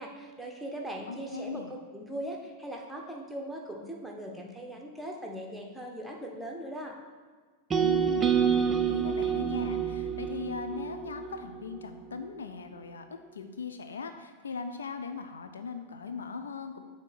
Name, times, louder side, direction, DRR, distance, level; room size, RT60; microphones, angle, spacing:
voice 1, 0.0-7.0, right 1 dB, ahead, 0 dB, 1.0 m, -40 dB
voice 2, 1.1-1.7 7.8-16.8, left 5 dB, 70° left, 8 dB, 0.4 m, -39 dB
sound 1, 7.7-11.8, right 8 dB, 20° right, 0.4 m, -28 dB
7.5 x 2.8 x 5.9 m, 1.5 s
figure-of-eight pair, 90°, 0 cm